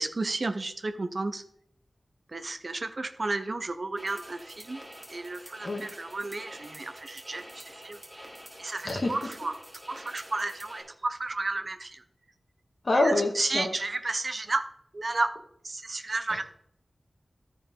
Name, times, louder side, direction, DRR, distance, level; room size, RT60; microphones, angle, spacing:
voice 1, 0.0-1.4 2.3-4.8 5.1-8.0 8.6-9.5 9.9-12.0 12.9-14.7 14.9-15.3 15.6-16.4, right 2 dB, 50° right, 9 dB, 0.8 m, -32 dB
sound 1, 4.0-10.8, equal, 5° right, 2.5 m, -47 dB
voice 2, 8.8-9.2 12.8-13.7 16.3-16.4, left 2 dB, 55° left, 2 dB, 1.7 m, -26 dB
13.5 x 4.7 x 3.7 m, 0.69 s
wide cardioid pair, 70°, 0 cm